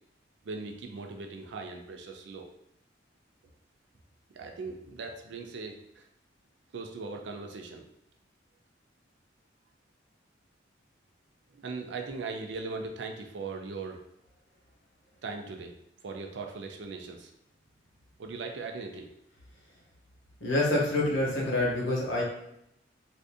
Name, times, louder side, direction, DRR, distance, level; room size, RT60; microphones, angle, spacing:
voice 1, 0.4-2.5 4.3-6.1 6.7-7.8 11.5-14.0 15.2-15.7 16.0-17.3 18.2-19.1, right 4 dB, 65° right, 3 dB, 0.4 m, -39 dB
voice 2, 20.4-22.2, left 1 dB, 75° left, -3 dB, 1.0 m, -27 dB
2.6 x 2.5 x 3.5 m, 0.77 s
head